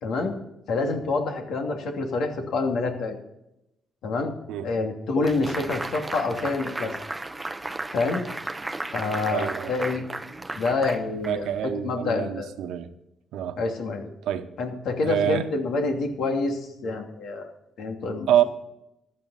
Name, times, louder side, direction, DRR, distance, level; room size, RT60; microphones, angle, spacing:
voice 1, 0.0-0.4 0.7-3.2 4.0-4.3 4.6-6.9 7.9-8.3 8.9-10.1 10.6-12.5 13.6-14.1 14.6-17.5 17.8-18.4, left 3 dB, 75° left, 2.7 m, -27 dB
sound 1, 5.2-11.7, right 2 dB, 15° right, 0.7 m, -34 dB
voice 2, 9.3-9.7 11.3-12.9 13.3-13.6 14.2-14.6 15.0-15.5 18.3-18.4, right 10 dB, 85° right, 1.1 m, -26 dB
15.0 x 11.5 x 4.2 m
cardioid pair, 90°, 0 cm